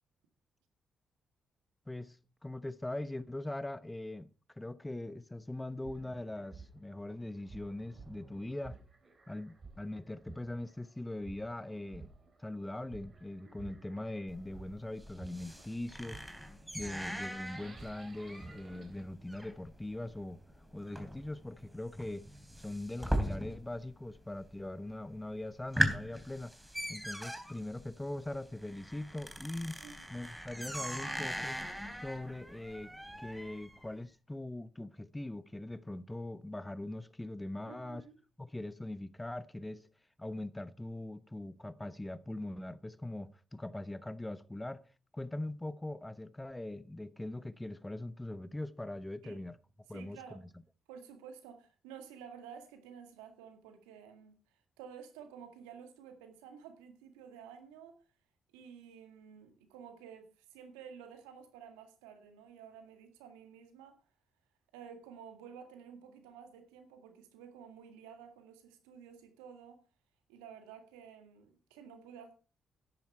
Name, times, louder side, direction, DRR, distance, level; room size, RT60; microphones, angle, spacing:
voice 1, 1.9-4.3 4.5-8.8 9.3-12.1 12.4-16.2 16.7-20.4 20.7-22.3 22.6-26.5 26.9-29.8 30.1-31.5 32.0-32.9 33.2-38.0 38.4-39.9 40.2-44.8 45.1-49.6 49.9-50.2, left 1 dB, 15° left, 1.0 m, -41 dB
sound 1, 5.5-19.0, right 4 dB, 45° right, 3.6 m, -54 dB
sound 2, 14.3-23.9 24.1-24.7 25.1-25.2 25.5-33.9, equal, 5° right, 3.4 m, -39 dB
voice 2, 37.6-38.2 49.2-49.4 49.9-50.4 50.9-58.0 58.5-64.0 64.7-69.8 70.3-72.3, right 7 dB, 85° right, 2.0 m, -52 dB
12.0 x 10.5 x 4.4 m
hypercardioid pair, 45°, 0 cm